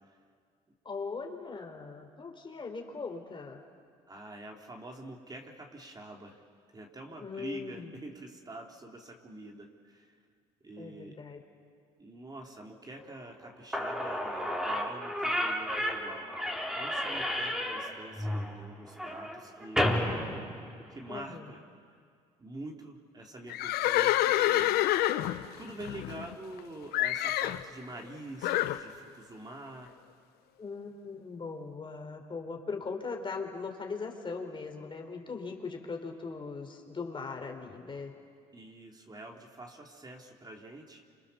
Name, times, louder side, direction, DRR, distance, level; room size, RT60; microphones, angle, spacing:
voice 1, 0.8-3.6 7.2-7.9 10.8-11.4 21.1-21.5 30.6-38.1, left 4 dB, 30° left, 3 dB, 4.0 m, -39 dB
voice 2, 4.1-6.4 6.7-10.2 10.6-11.2 12.0-16.3 16.8-20.0 20.9-21.6 22.4-24.8 25.6-29.9 38.5-41.0, right 1 dB, 25° right, 1 dB, 3.5 m, -46 dB
Slam / Squeak, 13.4-13.5 13.7-21.2, equal, 5° right, 4.3 m, -32 dB
Livestock farm animals working animals, 23.5-26.6 26.9-27.6 28.4-28.8, left 14 dB, 70° left, 0.9 m, -27 dB
29.0 x 27.0 x 7.1 m, 2.1 s
supercardioid pair, 70°, 17 cm